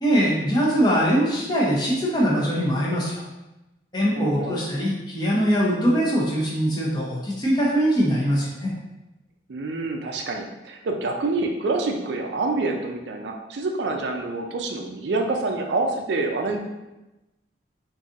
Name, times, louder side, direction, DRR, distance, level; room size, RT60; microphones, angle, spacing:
voice 1, 0.0-3.1 3.9-8.7, equal, 20° left, -5 dB, 0.7 m, -22 dB
voice 2, 4.2-4.6 9.5-16.6, right 3 dB, 70° right, 3 dB, 0.4 m, -27 dB
3.9 x 2.6 x 2.5 m, 1.0 s
head